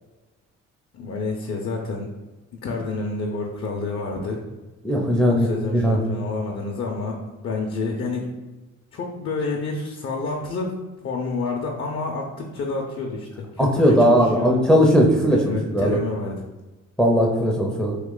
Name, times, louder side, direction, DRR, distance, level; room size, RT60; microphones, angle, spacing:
voice 1, 0.9-2.1 2.5-4.4 5.3-7.2 7.4-8.3 8.9-10.8 11.0-14.6 15.3-16.5, left 3 dB, 45° left, 0 dB, 0.6 m, -29 dB
voice 2, 4.8-6.0 13.6-16.0 17.0-18.0, equal, 5° left, 0 dB, 0.5 m, -18 dB
3.1 x 2.8 x 3.7 m, 1.2 s
cardioid pair, 90°, 30 cm